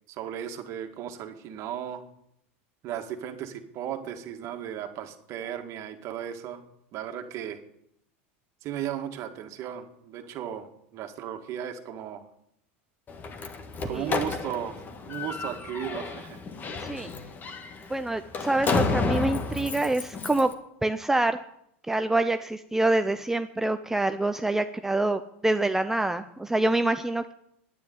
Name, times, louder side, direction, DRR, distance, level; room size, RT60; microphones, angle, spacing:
voice 1, 0.1-2.1 2.8-6.6 6.9-7.6 8.6-12.3 13.8-16.4, right 10 dB, 45° right, 6 dB, 1.9 m, -36 dB
Slam, 13.1-20.5, left 4 dB, 25° left, 1.5 m, -32 dB
voice 2, 17.9-20.5 20.8-21.4 21.9-27.3, right 2 dB, 5° right, 9 dB, 0.5 m, -26 dB
10.0 x 9.5 x 9.4 m, 0.75 s
supercardioid pair, 120°, 7 cm